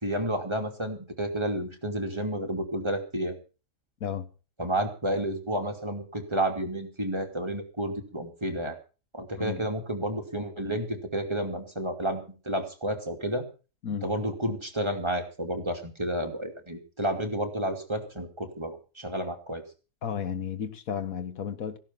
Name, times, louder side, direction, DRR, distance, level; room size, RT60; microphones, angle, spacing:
voice 1, 0.0-3.4 4.6-8.8 9.1-13.4 14.0-19.6, right 1 dB, 15° right, 2.7 m, -31 dB
voice 2, 20.0-21.8, left 8 dB, 60° left, 1.9 m, -33 dB
16.0 x 12.0 x 5.7 m
omnidirectional pair, 1.7 m